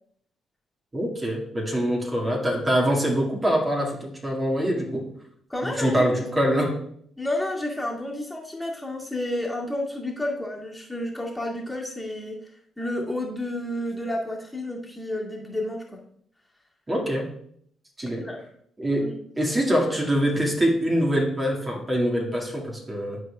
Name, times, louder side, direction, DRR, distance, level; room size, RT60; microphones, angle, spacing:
voice 1, 0.9-5.1 5.6-6.8 16.9-17.3 18.0-18.3 18.8-23.2, equal, 25° right, -2 dB, 2.0 m, -24 dB
voice 2, 5.5-6.1 6.5-6.6 7.2-12.4 12.8-16.0 18.2-18.4 19.0-19.2, left 1 dB, 10° left, -3 dB, 2.0 m, -30 dB
11.5 x 4.7 x 2.3 m, 0.65 s
hypercardioid pair, 45°, 0 cm